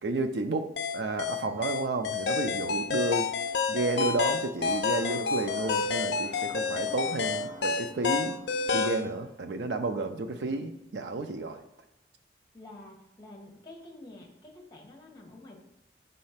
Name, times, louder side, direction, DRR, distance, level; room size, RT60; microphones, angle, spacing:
voice 1, 0.0-0.7 0.9-3.3 3.7-8.4 8.7-11.6, right 2 dB, 75° right, 6 dB, 0.5 m, -31 dB
sound 1, 0.8-9.1, left 5 dB, 70° left, 0.4 m, -29 dB
sound 2, 1.8-8.9, equal, 40° right, 1.3 m, -50 dB
voice 2, 12.5-15.6, left 2 dB, 25° left, 1 dB, 1.2 m, -48 dB
5.5 x 3.2 x 5.7 m, 0.88 s
head